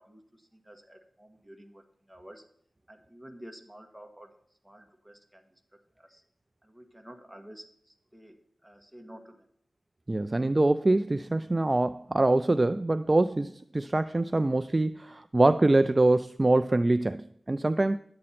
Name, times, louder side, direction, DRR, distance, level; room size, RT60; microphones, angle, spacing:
voice 1, 0.0-2.4 2.9-4.3 4.6-6.2 6.6-9.5, equal, 5° right, 3 dB, 1.5 m, -51 dB
voice 2, 10.1-18.0, right 2 dB, 25° right, 12 dB, 0.3 m, -24 dB
11.0 x 8.7 x 4.2 m, 0.67 s
wide cardioid pair, 85°, 0 cm